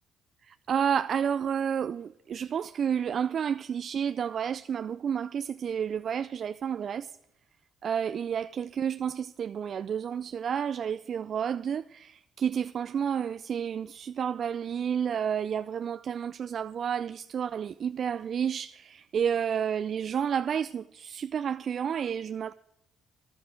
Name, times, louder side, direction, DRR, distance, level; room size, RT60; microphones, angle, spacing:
voice 1, 0.4-7.2 7.8-22.5, right 8 dB, 55° right, 0.3 m, -30 dB
14.0 x 11.0 x 4.6 m
hypercardioid pair, 55°, 0 cm